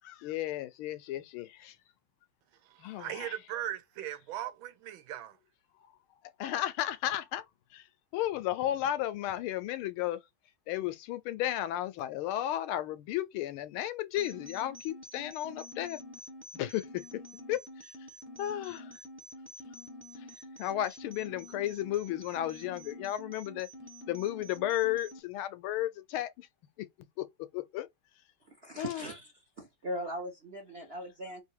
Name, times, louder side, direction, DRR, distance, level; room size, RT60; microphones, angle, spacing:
voice 1, 0.0-1.8 2.8-3.3 6.4-7.4 7.7-7.9 8.1-10.2 10.7-16.0 16.5-17.0 17.5-17.9 18.4-18.9 20.2-20.3 20.6-23.7 24.1-26.5 26.8-26.9 27.2-27.3 27.5-27.9 28.8-29.0, left 13 dB, 80° left, 1.4 m, -34 dB
voice 2, 2.6-5.4, right 12 dB, 75° right, 1.4 m, -39 dB
sound 1, 14.2-25.2, left 1 dB, 10° right, 0.7 m, -48 dB
voice 3, 28.5-29.3 29.6-31.4, equal, 50° right, 0.7 m, -39 dB
3.5 x 2.7 x 4.4 m
omnidirectional pair, 2.4 m